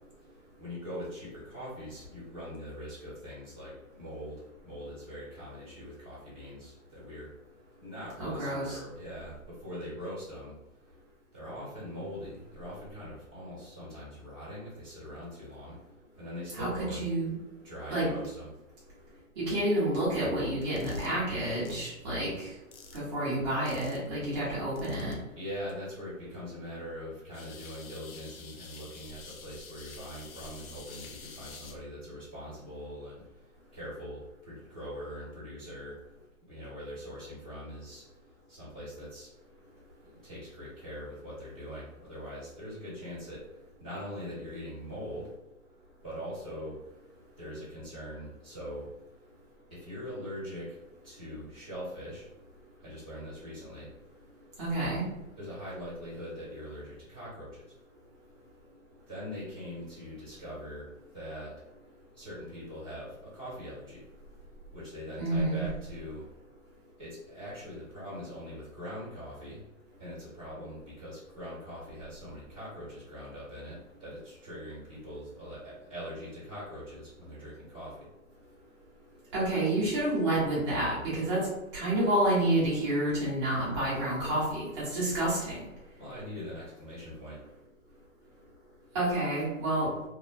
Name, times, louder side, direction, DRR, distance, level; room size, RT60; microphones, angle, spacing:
voice 1, 0.6-3.7 4.0-7.3 7.8-10.6 10.9-11.0 11.3-15.8 16.2-17.0 17.6-18.5 25.3-36.0 36.5-38.0 38.5-39.3 40.0-45.3 46.0-46.8 47.4-48.9 49.7-50.8 51.0-52.3 52.8-53.9 55.4-57.7 59.1-61.5 62.1-64.0 64.7-66.3 67.0-69.6 70.0-78.1 86.0-87.4, equal, 5° left, -19 dB, 0.5 m, -42 dB
voice 2, 8.2-8.8 16.5-17.3 17.9-18.1 19.4-22.5 22.9-25.1 54.6-55.0 65.2-65.6 79.3-81.5 81.7-85.5 88.9-89.9, right 1 dB, 20° right, -9 dB, 0.9 m, -29 dB
sound 1, 20.6-21.1 21.6-21.9 22.7-23.1 23.7-24.1 24.8-25.1 25.7-25.8 27.3-31.7, left 5 dB, 75° left, 0.7 m, -49 dB
3.0 x 2.0 x 2.5 m, 0.93 s
hypercardioid pair, 165°, 42 cm